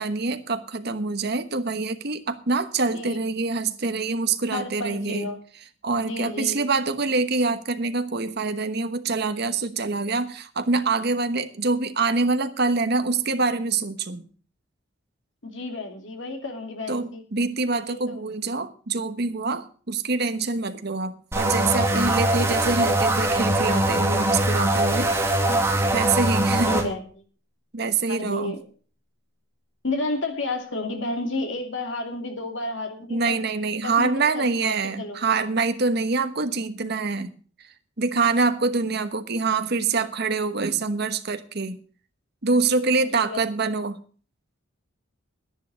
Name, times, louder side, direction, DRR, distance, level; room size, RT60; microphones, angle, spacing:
voice 1, 0.0-5.3 5.8-14.2 16.9-25.1 25.9-26.9 27.7-28.5 33.1-37.3 38.0-41.8 42.4-44.0, right 4 dB, 55° right, 9 dB, 1.2 m, -25 dB
voice 2, 4.5-5.4 6.1-6.6 15.4-17.2 17.9-18.2 25.5-25.6 26.2-27.0 28.1-28.6 29.8-33.4 33.8-35.4 43.0-43.4, left 2 dB, 65° left, 4 dB, 2.7 m, -31 dB
sound 1, 21.3-26.8, right 1 dB, 15° right, 2.0 m, -22 dB
10.5 x 10.5 x 6.3 m, 0.42 s
head